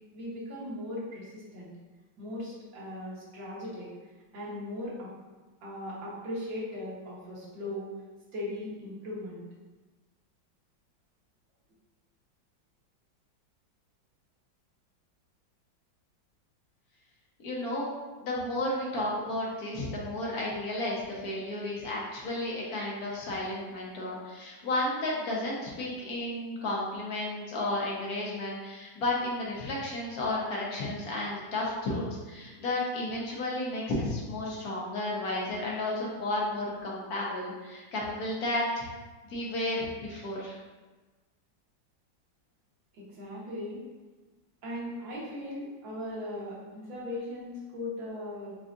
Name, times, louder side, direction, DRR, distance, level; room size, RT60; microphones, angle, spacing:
voice 1, 0.1-1.7 2.2-3.9 4.3-5.1 5.6-7.9 8.3-9.4 42.9-43.8 44.6-48.5, left 1 dB, 75° right, -6 dB, 2.0 m, -38 dB
voice 2, 17.4-17.9 18.2-38.8 39.3-40.6, left 1 dB, 55° left, -4 dB, 1.3 m, -32 dB
4.8 x 4.0 x 2.5 m, 1.3 s
omnidirectional pair, 2.1 m